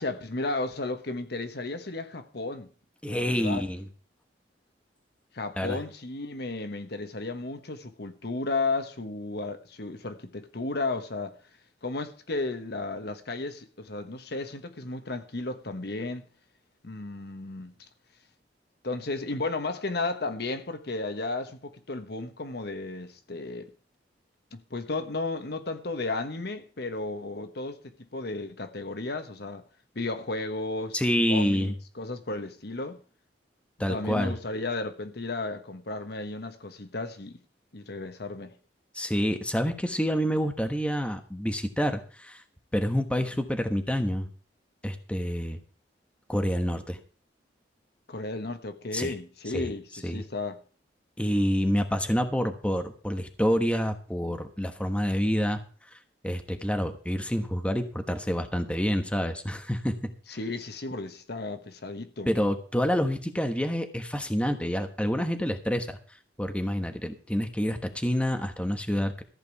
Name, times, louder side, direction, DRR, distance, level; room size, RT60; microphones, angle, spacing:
voice 1, 0.0-2.7 3.1-3.7 5.3-11.4 11.8-16.2 16.8-17.8 18.8-23.7 24.5-27.8 28.1-29.6 29.9-31.0 31.3-33.0 33.9-37.4 37.7-38.5 48.1-50.6 60.3-62.3, left 3 dB, 65° left, 1.2 m, -34 dB
voice 2, 3.0-3.8 5.6-5.8 30.9-31.7 33.8-34.3 38.9-42.4 42.7-44.3 44.8-45.6 46.3-47.0 48.9-49.1 49.5-49.7 50.0-50.2 51.2-55.6 56.2-60.1 62.3-66.0 66.4-69.2, equal, 5° left, 1.2 m, -27 dB
14.5 x 5.2 x 8.3 m
head